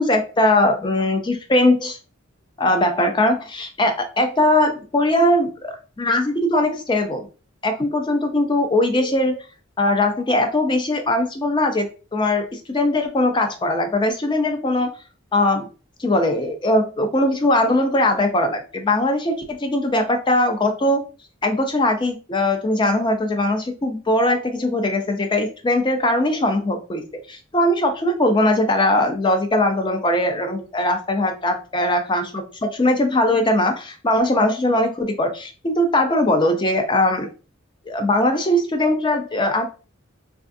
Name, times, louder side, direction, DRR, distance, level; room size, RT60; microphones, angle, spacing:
voice 1, 0.0-2.0 2.6-7.3 7.6-9.4 9.8-14.9 15.3-15.7 16.0-21.0 21.4-27.0 27.3-37.3 37.9-39.7, left 1 dB, 25° left, 5 dB, 0.4 m, -20 dB
3.3 x 2.4 x 2.5 m, 0.35 s
head